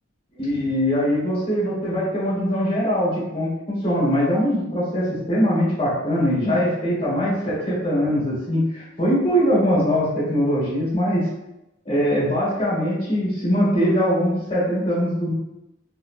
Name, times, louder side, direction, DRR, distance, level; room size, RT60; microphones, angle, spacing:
voice 1, 0.3-11.2 11.8-15.3, equal, 25° left, -8 dB, 1.0 m, -22 dB
3.8 x 2.0 x 2.4 m, 0.91 s
head